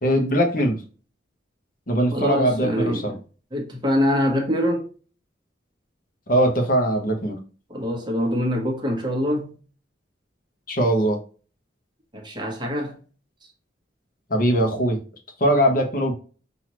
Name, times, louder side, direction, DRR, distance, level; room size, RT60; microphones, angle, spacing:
voice 1, 0.0-0.8 1.9-3.1 6.3-7.4 10.7-11.2 14.3-15.0 15.4-16.1, right 1 dB, 45° left, 1.1 m, -21 dB
voice 2, 2.1-3.2 3.5-4.9 7.7-9.5 12.1-13.0, left 1 dB, 25° right, 1.1 m, -24 dB
6.0 x 2.9 x 3.0 m
head